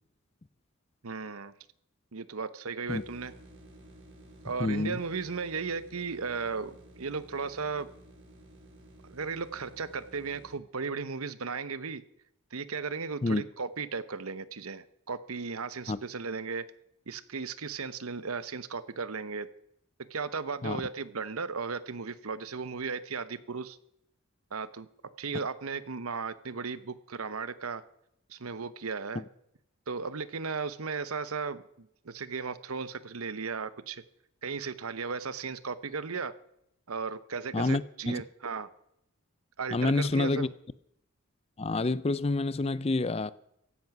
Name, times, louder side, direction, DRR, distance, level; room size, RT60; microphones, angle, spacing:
voice 1, 1.0-1.5 2.1-3.3 4.4-7.9 9.1-12.0 12.5-16.6 17.1-19.5 20.1-23.8 24.5-24.9 25.2-27.8 28.3-29.2 29.9-34.0 34.4-36.3 36.9-38.7 39.6-40.5, right 5 dB, 85° right, 0.9 m, -36 dB
sound 1, 2.9-10.6, right 1 dB, 65° right, 5.9 m, -53 dB
voice 2, 4.6-5.0 13.2-13.4 15.9-16.0 20.6-20.8 29.2-29.3 37.5-38.2 39.7-40.5 41.6-43.3, left 3 dB, 30° left, 0.4 m, -28 dB
15.5 x 10.5 x 6.0 m
head